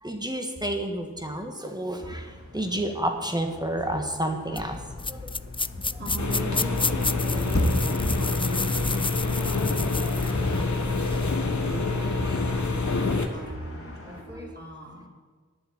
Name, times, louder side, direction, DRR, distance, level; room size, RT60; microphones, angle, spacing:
voice 1, 0.0-4.8 5.1-5.3 5.9-6.0 8.5-8.6 11.8-12.4 12.7-13.0 14.1-14.6, right 1 dB, 15° right, 4 dB, 1.5 m, -31 dB
sound 1, 2.0-14.2, left 1 dB, 50° left, 2.3 m, -36 dB
sound 2, 4.6-11.3, left 3 dB, 20° left, 0.3 m, -32 dB
voice 2, 6.0-10.0 10.3-10.8 11.6-15.1, right 1 dB, 35° right, -4 dB, 3.9 m, -41 dB
sound 3, 6.2-13.3, left 3 dB, 65° left, 1.2 m, -27 dB
10.5 x 7.2 x 8.7 m, 1.5 s
wide cardioid pair, 70°, 31 cm